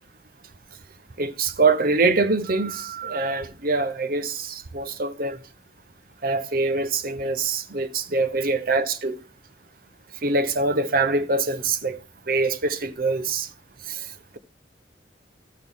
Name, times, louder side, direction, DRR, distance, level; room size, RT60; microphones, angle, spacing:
voice 1, 1.2-5.4 6.2-9.2 10.2-12.0 12.3-13.5 13.9-14.1, right 3 dB, 55° right, 0.8 m, -24 dB
13.5 x 6.2 x 3.6 m
head